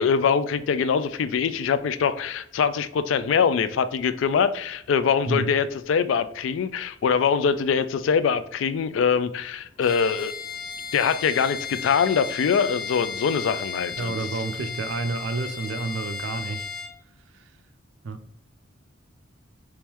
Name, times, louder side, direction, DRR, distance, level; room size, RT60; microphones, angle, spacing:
voice 1, 0.0-10.3 10.9-14.2, left 6 dB, 75° left, 0.3 m, -23 dB
Bowed string instrument, 9.8-17.0, left 5 dB, 20° left, 0.6 m, -35 dB
voice 2, 14.0-16.7 17.3-17.5 18.0-18.2, right 3 dB, 70° right, 0.4 m, -30 dB
3.5 x 3.1 x 3.0 m
head